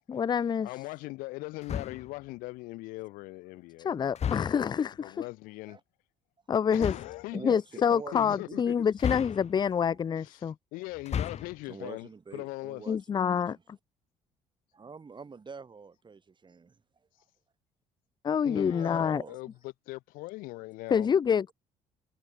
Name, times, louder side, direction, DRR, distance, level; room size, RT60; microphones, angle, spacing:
voice 1, 0.1-0.7 3.8-5.2 6.5-6.9 7.4-10.5 12.9-13.6 18.2-19.2 20.9-21.5, left 7 dB, 30° left, 0.4 m, -27 dB
voice 2, 0.6-3.9 4.2-4.5 5.0-5.8 6.7-7.5 8.1-8.7 10.2-12.8 18.4-21.1, left 22 dB, 80° left, 4.3 m, -40 dB
sound 1, 1.6-2.2 4.1-4.8 6.7-7.2 9.0-9.8 10.9-11.6, left 8 dB, 50° left, 3.3 m, -34 dB
voice 3, 7.3-8.9 9.9-10.0 11.7-13.4 14.8-17.1 18.7-19.5, right 5 dB, 35° right, 6.8 m, -46 dB
supercardioid pair, 70°, 14 cm